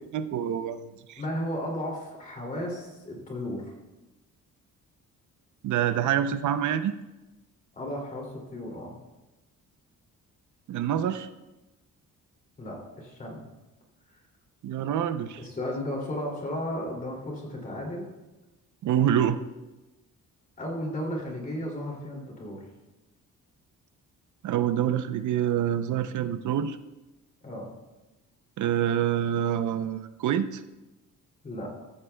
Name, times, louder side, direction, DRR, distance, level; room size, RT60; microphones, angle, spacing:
voice 1, 0.1-1.2 5.6-7.0 10.7-11.3 14.6-15.4 18.8-19.4 24.4-26.8 28.6-30.6, right 10 dB, 65° right, 11 dB, 0.6 m, -26 dB
voice 2, 1.2-3.7 7.8-9.0 12.6-13.5 15.4-18.1 20.6-22.6 27.4-27.7 31.4-31.7, left 1 dB, 25° left, -1 dB, 2.6 m, -34 dB
14.5 x 14.0 x 2.2 m, 1.1 s
cardioid pair, 175°, 32 cm